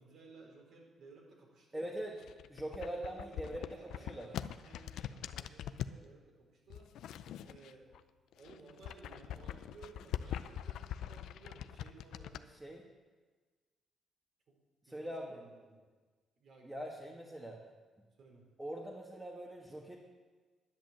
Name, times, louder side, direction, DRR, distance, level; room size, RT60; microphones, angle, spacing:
voice 1, 0.0-1.9 2.8-6.9 7.4-7.9 8.3-12.5 14.5-14.6 14.9-15.8 16.4-16.8 18.2-18.4, right 3 dB, 65° right, -1 dB, 4.3 m, -57 dB
voice 2, 1.7-2.2 2.5-4.3 12.6-12.8 14.8-15.4 16.6-17.6 18.6-20.0, right 1 dB, 10° right, -1 dB, 1.8 m, -42 dB
sound 1, 2.1-6.0 6.7-8.0 8.3-12.4, left 10 dB, 80° left, 0.5 m, -43 dB
10.5 x 10.5 x 7.6 m, 1.4 s
cardioid pair, 90°, 0 cm